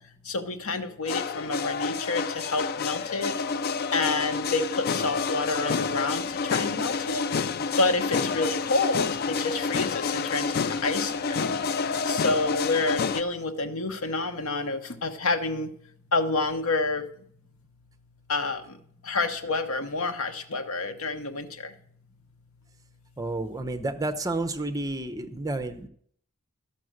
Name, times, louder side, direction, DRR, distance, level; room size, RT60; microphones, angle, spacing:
voice 1, 0.3-3.3 3.9-6.2 6.5-7.2 7.8-10.5 10.8-11.5 12.1-15.7 16.1-17.0 18.3-18.6 19.1-21.5, left 3 dB, 80° left, 7 dB, 1.0 m, -28 dB
sound 1, 1.1-13.2, left 5 dB, 45° left, 0.4 m, -29 dB
voice 2, 23.2-25.9, right 2 dB, 15° right, 7 dB, 0.7 m, -30 dB
12.0 x 5.9 x 6.3 m, 0.62 s
head